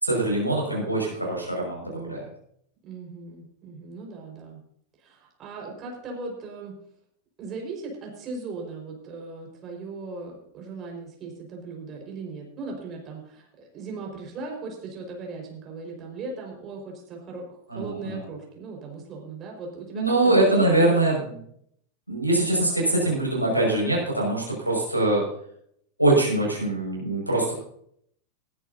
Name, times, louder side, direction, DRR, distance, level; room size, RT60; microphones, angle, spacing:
voice 1, 0.0-2.2 17.7-18.2 19.9-21.3 22.1-25.2 26.0-27.5, right 2 dB, 90° right, -3 dB, 5.7 m, -23 dB
voice 2, 2.8-4.6 5.0-6.8 7.4-21.0, right 3 dB, 30° right, 0 dB, 5.0 m, -38 dB
21.0 x 11.0 x 2.8 m, 0.68 s
figure-of-eight pair, 90°, 0 cm